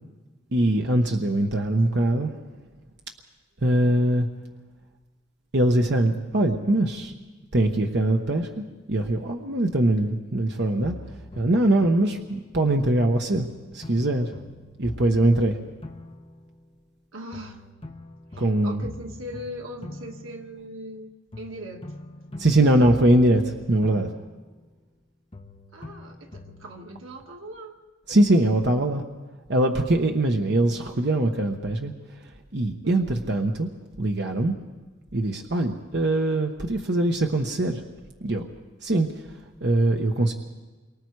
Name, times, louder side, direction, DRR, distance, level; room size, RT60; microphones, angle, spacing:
voice 1, 0.5-2.3 3.6-4.3 5.5-7.1 7.5-11.0 11.4-13.5 13.7-14.3 14.8-15.6 18.4-18.8 22.4-24.1 28.1-29.0 29.5-31.9 32.5-33.7 34.0-34.6 35.1-37.8 38.2-38.4 38.8-39.1 39.6-40.3, right 1 dB, 55° right, 3 dB, 1.1 m, -22 dB
sound 1, 10.8-13.0 13.3-17.0 17.3-21.0 21.3-25.0 25.3-26.9, left 1 dB, 30° left, 1.1 m, -43 dB
voice 2, 17.1-17.6 18.3-21.9 25.7-27.8 32.8-33.1, equal, 90° right, 2 dB, 2.0 m, -40 dB
28.5 x 24.0 x 4.8 m, 1.3 s
head